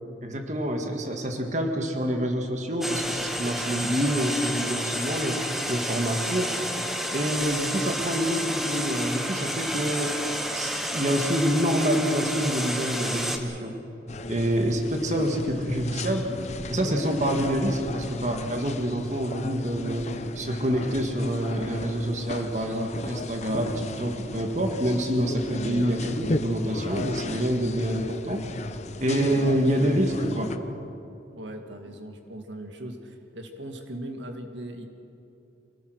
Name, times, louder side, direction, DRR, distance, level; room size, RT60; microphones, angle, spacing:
voice 1, 0.2-6.6 7.1-10.2 10.5-13.8 14.3-16.3 16.7-20.1 20.4-28.5 29.0-30.5, equal, 40° right, 3 dB, 1.9 m, -27 dB
sound 1, 2.8-13.4, equal, ahead, 1.3 m, -30 dB
sound 2, 14.1-30.6, left 2 dB, 40° left, 0.8 m, -34 dB
voice 2, 29.3-29.7 31.3-34.9, right 1 dB, 90° right, 5 dB, 1.9 m, -39 dB
25.5 x 18.0 x 6.4 m, 2.8 s
head